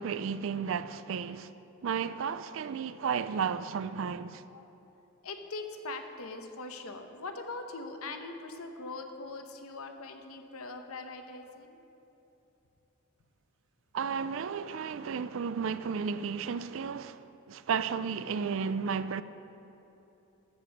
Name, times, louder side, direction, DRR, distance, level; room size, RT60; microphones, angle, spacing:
voice 1, 0.0-1.5 1.8-4.4 13.9-19.2, right 6 dB, 65° right, 0.4 m, -33 dB
voice 2, 5.2-11.8 14.9-15.0, left 3 dB, 85° left, 0.9 m, -41 dB
13.5 x 5.2 x 7.3 m
head